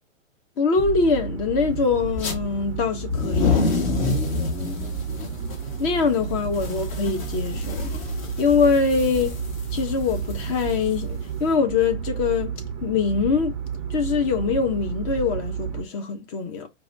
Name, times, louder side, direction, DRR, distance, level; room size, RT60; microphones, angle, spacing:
voice 1, 0.6-3.6 5.8-7.8 8.4-9.4 9.7-12.5 12.8-13.6 13.9-16.7, left 5 dB, 20° left, 0.5 m, -23 dB
sound 1, 0.8-15.8, right 8 dB, 30° right, 0.5 m, -32 dB
sound 2, 2.1-2.4 2.9-11.5, left 4 dB, 45° left, 1.5 m, -28 dB
4.6 x 2.3 x 2.5 m
figure-of-eight pair, 120°, 39 cm